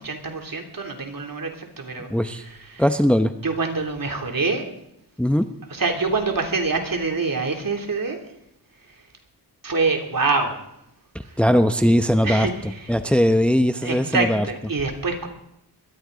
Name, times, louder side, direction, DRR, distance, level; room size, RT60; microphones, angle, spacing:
voice 1, 0.0-2.1 2.3-2.8 3.4-4.6 5.7-8.2 8.9-9.1 9.6-10.7 11.2-11.4 12.2-12.9 13.8-15.3, right 3 dB, 50° right, 2 dB, 3.2 m, -26 dB
voice 2, 2.1-2.4 2.8-3.3 5.2-5.5 11.4-12.5 12.9-14.4, equal, 5° left, 8 dB, 0.8 m, -19 dB
21.5 x 14.5 x 4.0 m, 0.79 s
cardioid pair, 65°, 42 cm